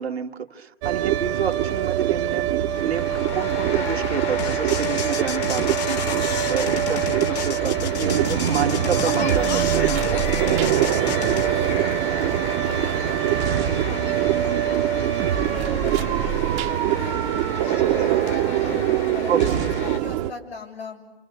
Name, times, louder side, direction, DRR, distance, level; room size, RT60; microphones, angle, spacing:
voice 1, 0.0-6.0 6.5-10.2 15.7-16.0 19.3-19.6, right 7 dB, 85° right, 3 dB, 1.8 m, -29 dB
sound 1, 0.8-20.3, right 12 dB, 30° right, 0.9 m, -23 dB
sound 2, 2.7-20.0, left 5 dB, 20° left, 1.2 m, -33 dB
sound 3, 4.4-11.5, left 7 dB, 40° left, 1.2 m, -31 dB
voice 2, 11.0-14.5 14.9-19.7 20.0-21.0, left 4 dB, 90° left, 0 dB, 7.1 m, -41 dB
28.0 x 28.0 x 6.7 m, 0.95 s
hypercardioid pair, 140°, 31 cm